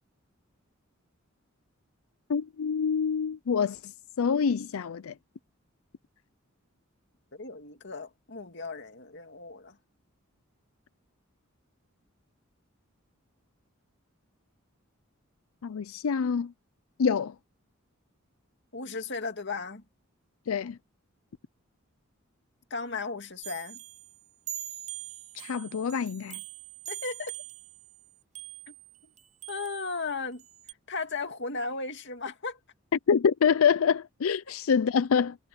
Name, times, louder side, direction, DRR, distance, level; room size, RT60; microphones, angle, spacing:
voice 1, 2.3-3.9 4.2-5.1 15.6-16.5 17.0-17.3 20.5-20.8 25.3-26.4 33.1-35.4, left 6 dB, 80° left, 0.4 m, -26 dB
voice 2, 7.3-9.8 18.7-19.8 22.7-23.8 26.9-27.3 28.7-28.8 29.5-30.4 30.9-32.6, left 4 dB, 60° left, 2.4 m, -35 dB
sound 1, 23.4-30.7, right 14 dB, 35° right, 7.0 m, -43 dB
head